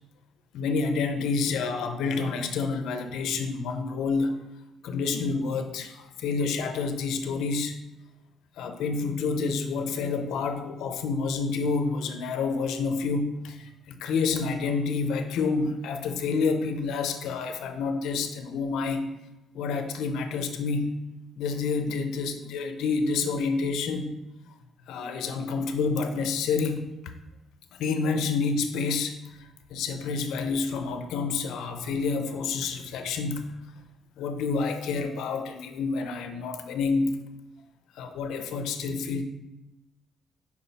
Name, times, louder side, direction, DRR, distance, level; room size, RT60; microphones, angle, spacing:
voice 1, 0.5-4.4 4.8-7.8 8.6-19.1 19.5-20.9 21.4-24.1 24.9-26.9 27.8-29.3 29.7-33.5 34.2-37.2 38.0-39.2, left 4 dB, 85° left, 7 dB, 0.6 m, -28 dB
5.4 x 4.7 x 4.1 m, 0.96 s
cardioid pair, 90°, 0 cm